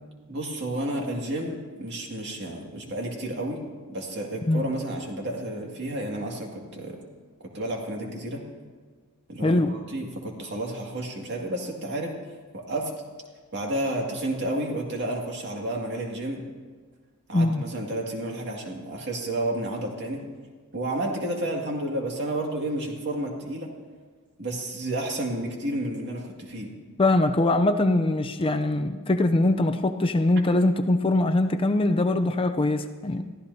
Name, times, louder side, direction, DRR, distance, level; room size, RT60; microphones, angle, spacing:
voice 1, 0.3-7.0 7.5-8.4 9.3-12.1 12.5-12.9 13.5-16.4 17.3-20.2 20.7-23.7 24.4-26.7, right 1 dB, 55° right, 0 dB, 2.2 m, -31 dB
voice 2, 9.4-9.8 17.3-17.7 27.0-33.2, left 2 dB, 25° left, 8 dB, 0.5 m, -22 dB
22.5 x 15.0 x 2.8 m, 1.5 s
head